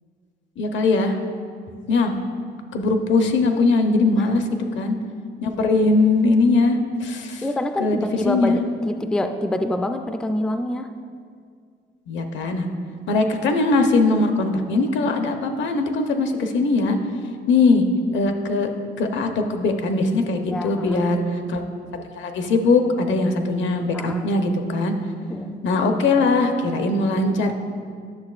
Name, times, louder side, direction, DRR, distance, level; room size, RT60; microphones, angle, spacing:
voice 1, 0.6-1.2 1.9-2.1 2.7-4.5 4.7-5.0 5.4-7.4 7.8-8.6 12.1-12.7 13.1-17.0 17.5-17.8 18.1-18.7 19.0-21.2 21.5-21.6 21.9-24.9 25.6-27.6, left 3 dB, 70° left, 5 dB, 0.7 m, -20 dB
voice 2, 7.4-10.9 20.5-21.0 23.9-24.3 25.3-25.6, left 1 dB, 5° left, 7 dB, 0.3 m, -26 dB
10.5 x 6.2 x 2.4 m, 2.1 s
cardioid pair, 90°, 20 cm